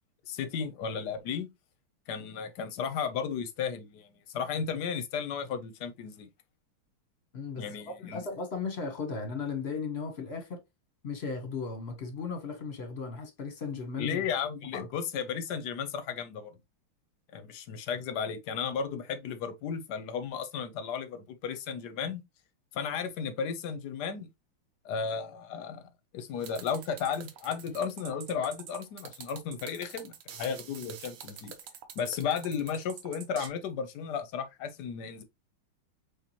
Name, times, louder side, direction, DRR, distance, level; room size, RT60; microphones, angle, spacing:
voice 1, 0.3-1.5 2.1-4.1 4.3-6.3 7.6-8.2 14.0-16.5 17.3-22.2 22.7-24.3 24.8-25.8 26.1-31.5 32.0-35.2, left 6 dB, 65° left, 1.1 m, -34 dB
voice 2, 7.3-10.6 11.0-14.2 14.7-14.9, left 5 dB, 40° left, 0.9 m, -36 dB
sound 1, 26.4-33.5, right 8 dB, 75° right, 1.6 m, -46 dB
6.6 x 2.6 x 2.9 m
omnidirectional pair, 2.3 m